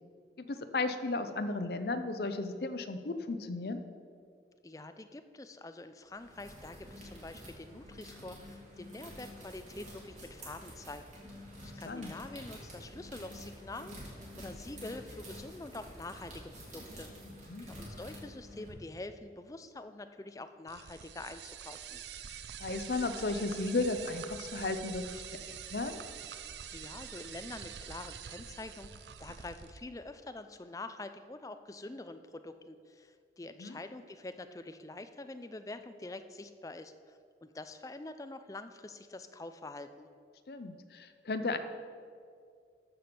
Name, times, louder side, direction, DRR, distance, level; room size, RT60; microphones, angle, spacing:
voice 1, 0.4-3.8 11.9-12.1 17.5-17.7 22.6-26.0 33.6-33.8 40.5-41.6, left 3 dB, 60° left, 9 dB, 0.6 m, -34 dB
voice 2, 4.6-17.1 17.6-22.0 26.7-28.9 29.2-40.1, left 2 dB, 20° left, 10 dB, 0.4 m, -46 dB
sound 1, 6.1-18.7, equal, 45° right, 2.8 m, -49 dB
sound 2, 20.7-29.8, right 8 dB, 75° right, 0.6 m, -46 dB
13.5 x 5.2 x 6.0 m, 2.2 s
head